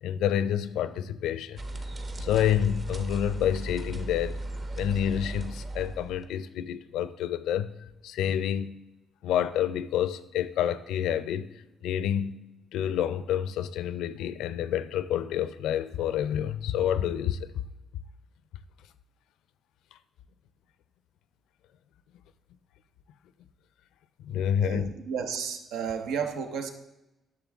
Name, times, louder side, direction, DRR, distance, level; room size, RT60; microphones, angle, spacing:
voice 1, 0.0-1.6 2.2-4.4 4.8-7.7 8.0-8.8 9.2-11.5 11.8-12.4 12.7-17.5 24.2-24.9, left 10 dB, 85° left, 0.4 m, -28 dB
sound 1, 1.6-6.2, right 1 dB, 35° right, 0.9 m, -36 dB
voice 2, 24.6-26.7, right 6 dB, 85° right, 0.8 m, -32 dB
10.5 x 6.6 x 3.5 m
cardioid pair, 90°, 0 cm